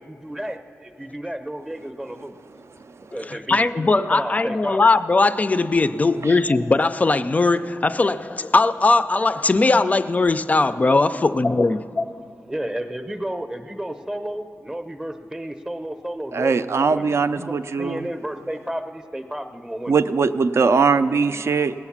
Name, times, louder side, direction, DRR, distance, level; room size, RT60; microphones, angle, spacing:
voice 1, 0.0-2.4 3.1-4.8 12.5-20.0, right 1 dB, 10° right, 0.7 m, -32 dB
voice 2, 3.2-12.0, left 3 dB, 30° left, 0.3 m, -19 dB
voice 3, 16.3-18.1 19.9-21.7, right 5 dB, 60° right, 0.4 m, -20 dB
18.5 x 9.0 x 7.2 m
wide cardioid pair, 145°, 5 cm